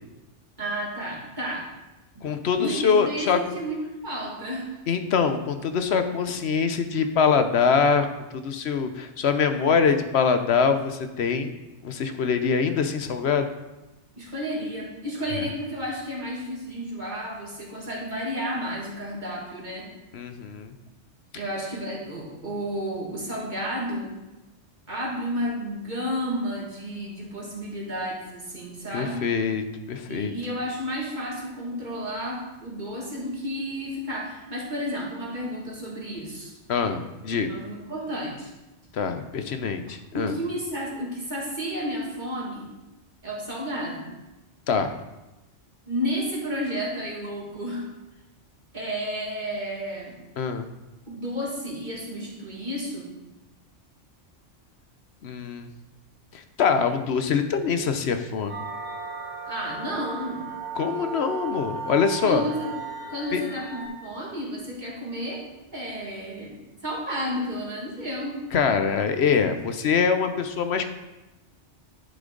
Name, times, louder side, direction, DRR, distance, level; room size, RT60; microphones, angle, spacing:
voice 1, 0.6-1.7 2.1-2.3 2.6-4.7 14.2-19.9 21.3-24.2 24.9-29.3 30.1-36.5 37.5-38.5 40.1-42.7 43.2-44.1 45.9-47.9 48.7-50.1 51.1-53.1 59.5-60.5 62.2-62.7 63.1-65.4 65.7-68.4, equal, 40° right, -4 dB, 2.4 m, -32 dB
voice 2, 2.2-3.4 4.9-8.1 8.3-11.6 11.8-13.5 20.1-20.7 28.9-30.3 36.7-37.5 38.9-40.3 44.7-44.9 50.4-50.7 55.2-55.7 56.3-58.6 60.8-62.4 63.3-63.4 68.5-70.9, left 6 dB, 65° left, 8 dB, 1.0 m, -24 dB
sound 1, 58.5-63.9, right 5 dB, 20° left, 3.6 m, -36 dB
11.0 x 6.7 x 3.9 m, 1.0 s
omnidirectional pair, 1.2 m